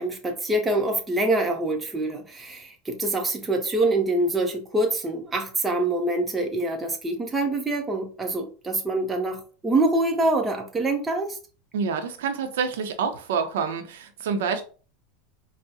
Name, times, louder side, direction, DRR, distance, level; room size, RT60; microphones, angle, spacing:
voice 1, 0.0-11.4, right 2 dB, 15° right, 0.6 m, -25 dB
voice 2, 11.7-14.6, right 6 dB, 80° right, 0.6 m, -27 dB
4.6 x 2.0 x 2.7 m
supercardioid pair, 130°, 0 cm